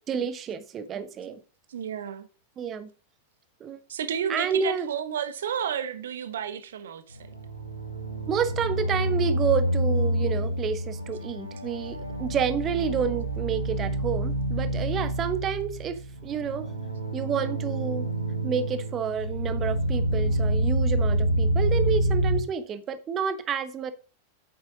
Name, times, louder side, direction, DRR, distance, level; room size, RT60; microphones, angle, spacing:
voice 1, 0.0-1.4 2.6-2.9 3.6-3.8 4.3-4.9 8.3-16.7 17.1-18.1 18.4-23.9, right 7 dB, 30° right, 1.1 m, -29 dB
voice 2, 1.7-2.3 3.9-7.3, right 8 dB, 60° right, 1.1 m, -32 dB
sound 1, 7.1-22.4, right 1 dB, 85° right, 1.9 m, -27 dB
8.7 x 8.0 x 3.8 m
figure-of-eight pair, 90°, 0 cm